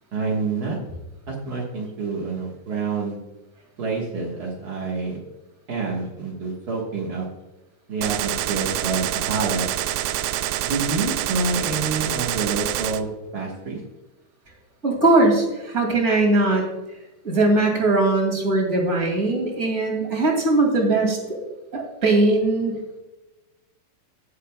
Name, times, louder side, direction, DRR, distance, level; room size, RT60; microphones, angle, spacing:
voice 1, 0.1-0.8 1.3-3.2 3.8-5.2 5.7-7.3 7.9-9.7 10.6-13.8, right 4 dB, 50° right, -4 dB, 1.1 m, -27 dB
Gunshot gunfire, 8.0-13.0, right 13 dB, 80° right, 2.0 m, -26 dB
voice 2, 14.8-16.7 17.2-21.4 21.7-22.8, right 2 dB, 25° right, 1 dB, 2.1 m, -20 dB
17.5 x 7.7 x 2.3 m, 1.1 s
omnidirectional pair, 3.9 m